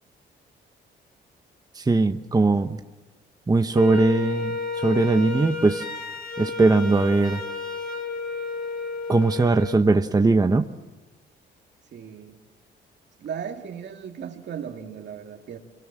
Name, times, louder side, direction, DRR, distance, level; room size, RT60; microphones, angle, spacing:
voice 1, 1.7-2.8 3.5-5.8 6.4-7.4 9.1-10.6, right 3 dB, 20° right, 7 dB, 1.0 m, -20 dB
Wind instrument woodwind instrument, 3.7-9.8, left 4 dB, 45° left, 3.3 m, -32 dB
voice 2, 11.9-12.4 13.2-15.6, right 7 dB, 60° right, 4 dB, 2.7 m, -36 dB
25.5 x 24.0 x 7.6 m, 1.2 s
cardioid pair, 90°, 20 cm